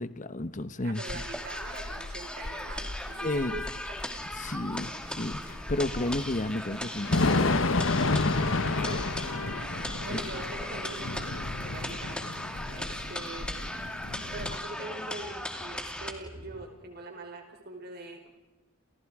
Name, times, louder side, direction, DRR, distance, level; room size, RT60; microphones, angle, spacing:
voice 1, 0.0-1.2 3.2-3.6 4.4-9.0 10.1-10.2, left 1 dB, 40° left, 12 dB, 1.1 m, -33 dB
voice 2, 0.8-3.6 3.9-4.0 8.8-11.4 11.6-13.7 14.3-18.3, right 2 dB, 55° right, 4 dB, 4.7 m, -43 dB
sound 1, 0.9-16.1, left 1 dB, 5° left, 2.4 m, -38 dB
Thunder / Rain, 1.1-14.6, left 3 dB, 90° left, 1.3 m, -31 dB
sound 2, 4.2-16.6, equal, 35° right, 7.2 m, -49 dB
30.0 x 29.0 x 4.9 m, 1.1 s
head